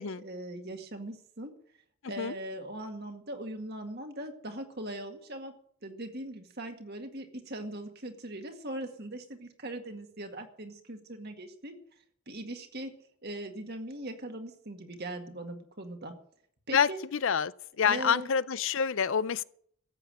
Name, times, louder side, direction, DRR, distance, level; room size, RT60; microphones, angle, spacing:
voice 1, 0.0-1.5 2.1-5.5 5.8-11.8 12.3-12.9 13.2-16.1 16.7-17.0 17.8-18.3, right 1 dB, 45° right, 2.0 m, -40 dB
voice 2, 16.7-17.5 17.8-19.4, left 7 dB, 60° left, 0.5 m, -27 dB
14.0 x 8.3 x 9.0 m
head